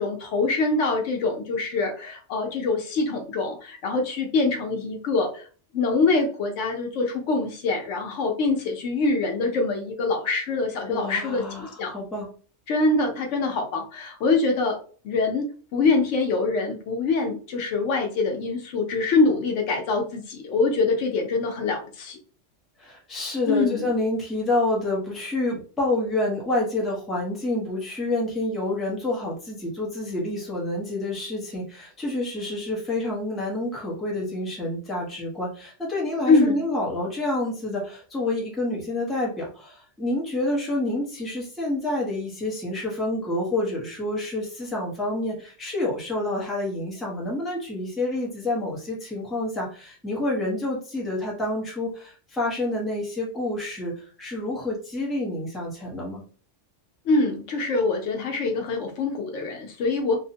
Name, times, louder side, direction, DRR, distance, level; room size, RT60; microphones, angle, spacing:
voice 1, 0.0-5.5 5.7-11.9 12.7-14.8 15.0-22.2 23.5-23.9 36.3-36.6 57.0-60.2, left 3 dB, 75° left, 3 dB, 1.0 m, -24 dB
voice 2, 10.9-12.3 22.8-56.2, left 2 dB, ahead, -4 dB, 0.6 m, -28 dB
2.6 x 2.1 x 2.7 m, 0.40 s
omnidirectional pair, 1.2 m